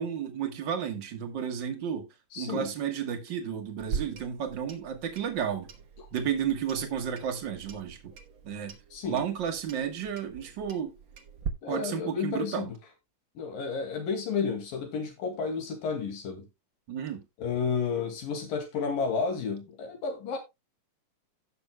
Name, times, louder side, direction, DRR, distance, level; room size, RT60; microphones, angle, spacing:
voice 1, 0.0-2.1 2.4-5.7 6.1-8.1 8.4-8.7 9.1-11.0 11.7-12.7 16.9-17.2, right 8 dB, 55° right, 1.3 m, -32 dB
voice 2, 2.3-2.7 8.9-9.2 11.6-12.8 13.4-16.5 17.4-20.4, left 5 dB, 80° left, 3.7 m, -31 dB
Clock, 3.8-11.5, right 6 dB, 85° right, 1.0 m, -42 dB
16.5 x 6.4 x 2.2 m
omnidirectional pair, 3.9 m